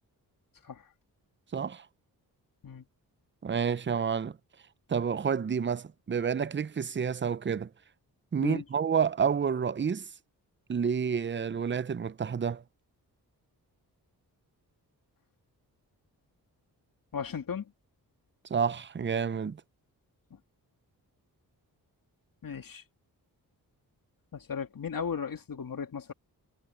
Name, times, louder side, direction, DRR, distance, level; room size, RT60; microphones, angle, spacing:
voice 1, 1.5-1.9 3.4-4.4 4.9-7.7 8.3-10.1 10.7-12.6 18.5-19.6, right 7 dB, 30° right, 0.6 m, -29 dB
voice 2, 17.1-17.7 22.4-22.8 24.3-26.1, left 6 dB, 60° left, 2.6 m, -36 dB
cardioid pair, 60°, 39 cm